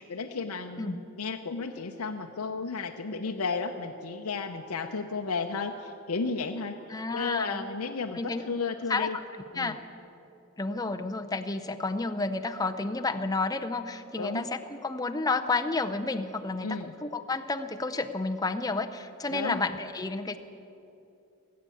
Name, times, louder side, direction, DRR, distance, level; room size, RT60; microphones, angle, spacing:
voice 1, 0.0-6.8 7.1-9.2 9.5-9.7 14.2-14.4 16.6-16.9 19.3-19.6, left 4 dB, 85° left, 3 dB, 0.7 m, -33 dB
voice 2, 6.9-7.7 8.1-8.4 8.9-9.1 9.5-9.8 10.6-20.4, left 3 dB, 15° left, 7 dB, 0.5 m, -31 dB
19.5 x 8.7 x 8.4 m, 2.9 s
head